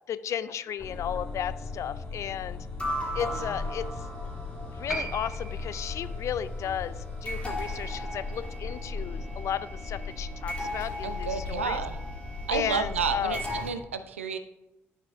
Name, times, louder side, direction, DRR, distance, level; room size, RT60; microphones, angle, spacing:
voice 1, 0.1-2.6 3.1-4.1 4.7-11.8 12.5-13.4, left 9 dB, 50° left, 15 dB, 0.4 m, -34 dB
sound 1, 0.8-13.7, left 2 dB, 20° left, 2.8 m, -35 dB
Piano, 4.9-11.8 12.1-12.2, right 2 dB, ahead, 2.2 m, -43 dB
voice 2, 11.0-12.0 12.5-14.4, right 6 dB, 85° right, 9 dB, 0.4 m, -30 dB
11.0 x 6.5 x 2.6 m, 0.96 s
figure-of-eight pair, 45°, 7 cm